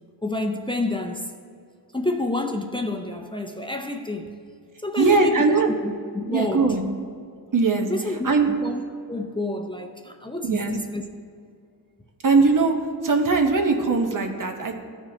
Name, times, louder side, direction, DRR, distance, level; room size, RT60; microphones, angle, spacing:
voice 1, 0.2-1.3 1.9-4.4 4.8-6.8 7.9-8.8 9.1-11.0, left 2 dB, 15° left, 0.5 m, -29 dB
voice 2, 5.0-5.7 6.3-6.9 7.5-7.9 8.2-8.5 10.4-10.8 12.2-12.7 13.0-14.7, right 4 dB, 55° right, 0.9 m, -20 dB
14.0 x 4.8 x 2.8 m
wide cardioid pair, 90°, 38 cm